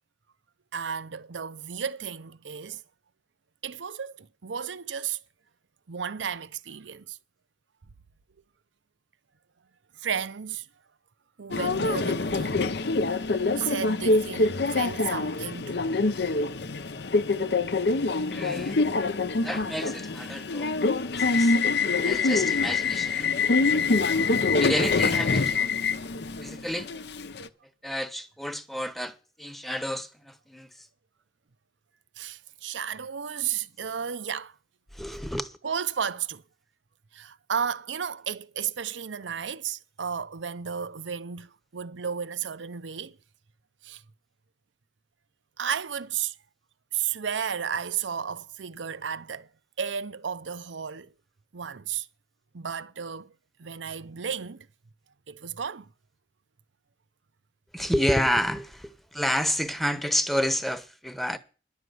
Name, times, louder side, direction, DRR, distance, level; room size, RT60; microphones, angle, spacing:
voice 1, 0.7-2.8 3.6-5.2 5.9-7.2 10.0-10.7 11.4-12.6 13.5-15.8 32.2-34.6 35.6-36.4 37.1-43.2 43.8-44.0 45.6-46.4 46.9-49.5 49.8-51.1 51.5-52.1 52.5-53.3 53.6-54.7 55.3-55.9, right 7 dB, 90° right, 0.7 m, -33 dB
Subway metro underground, 11.5-27.5, left 3 dB, 65° left, 0.7 m, -25 dB
voice 2, 18.3-18.8 19.4-20.7 21.1-21.5 22.0-23.4 24.6-25.7 26.4-26.9 27.8-30.7 34.9-35.6 57.7-61.4, equal, ahead, 0.9 m, -30 dB
11.0 x 6.6 x 9.3 m
head